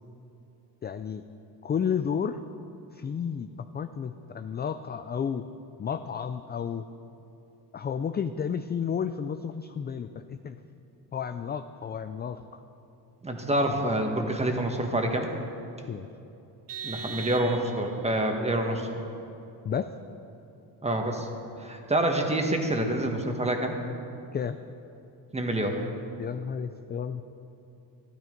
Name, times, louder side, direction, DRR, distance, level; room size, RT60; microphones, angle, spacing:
voice 1, 0.8-1.2 1.6-2.4 2.9-3.5 3.7-5.5 5.8-6.9 7.7-10.6 11.1-12.4 15.9-16.1 19.6-19.9 24.3-24.6 26.2-27.2, left 7 dB, 25° left, 9 dB, 0.3 m, -32 dB
voice 2, 13.2-15.3 16.8-19.0 20.8-21.3 21.6-23.8 25.3-25.8, right 1 dB, 15° right, 3 dB, 1.5 m, -27 dB
Vehicle horn car horn honking, 16.7-18.1, right 6 dB, 75° right, 1.5 m, -39 dB
13.5 x 12.5 x 5.2 m, 2.8 s
cardioid pair, 120°, 42 cm